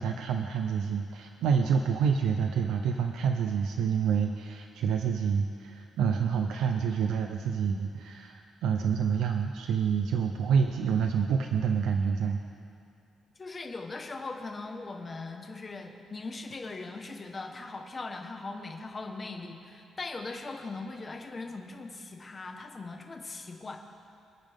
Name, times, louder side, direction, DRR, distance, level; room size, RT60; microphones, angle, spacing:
voice 1, 0.0-12.4, right 6 dB, 85° right, 4 dB, 0.7 m, -28 dB
voice 2, 13.4-23.8, left 3 dB, 25° left, 3 dB, 1.3 m, -40 dB
27.5 x 9.3 x 3.7 m, 2.5 s
cardioid pair, 140°, 0 cm